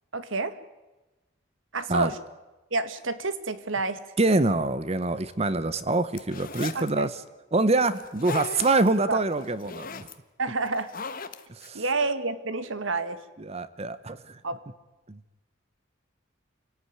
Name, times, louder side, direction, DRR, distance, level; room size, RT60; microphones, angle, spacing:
voice 1, 0.1-0.6 1.7-2.2 2.7-4.0 6.7-7.1 9.1-9.2 10.4-10.9 11.7-13.2 14.4-14.6, right 3 dB, 75° right, 12 dB, 1.8 m, -29 dB
voice 2, 4.2-7.2 7.5-10.1 11.5-11.8 13.4-14.4 15.1-15.2, right 2 dB, 30° right, 14 dB, 0.9 m, -25 dB
sound 1, 6.1-6.9 8.0-8.9 9.3-10.1 10.7-11.7, left 4 dB, 45° left, 1.3 m, -37 dB
27.0 x 17.5 x 9.7 m, 1.1 s
head